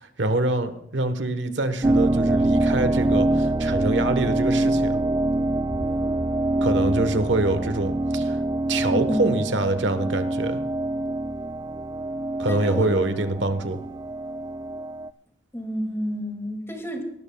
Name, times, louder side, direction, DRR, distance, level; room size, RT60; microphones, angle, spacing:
voice 1, 0.0-5.0 6.6-8.4 8.7-10.6 12.4-13.8, right 2 dB, 80° right, 10 dB, 1.1 m, -25 dB
sound 1, 1.8-15.1, right 2 dB, 20° right, 0.3 m, -25 dB
voice 2, 8.9-9.5 12.5-13.0 15.5-17.0, equal, 15° left, 2 dB, 2.2 m, -30 dB
19.0 x 12.5 x 2.3 m, 0.81 s
head